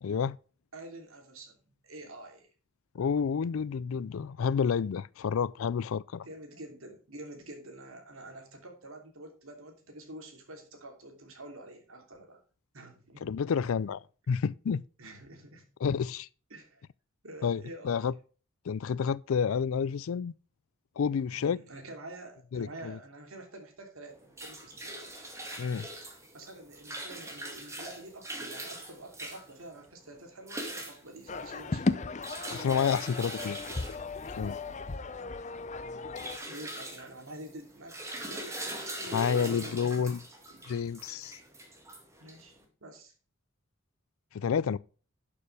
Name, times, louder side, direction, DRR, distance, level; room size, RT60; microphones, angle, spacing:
voice 1, 0.0-0.4 2.9-6.3 13.2-14.8 15.8-16.3 17.4-18.1 18.7-20.3 21.0-21.6 22.5-23.0 25.6-25.9 32.5-33.6 34.4-34.6 39.1-40.2 40.7-41.4 44.3-44.8, left 6 dB, 80° left, 0.4 m, -29 dB
voice 2, 0.7-1.6 1.8-2.5 6.2-12.4 12.7-13.3 15.0-15.6 16.5-16.8 17.2-18.1 21.3-25.1 26.3-32.0 36.5-39.8 40.5-40.7 42.2-43.1, right 1 dB, 85° right, 3.0 m, -47 dB
sound 1, 24.1-42.6, right 1 dB, 15° right, 2.2 m, -42 dB
sound 2, 31.3-36.4, left 3 dB, 35° left, 0.6 m, -35 dB
12.0 x 6.8 x 3.3 m
head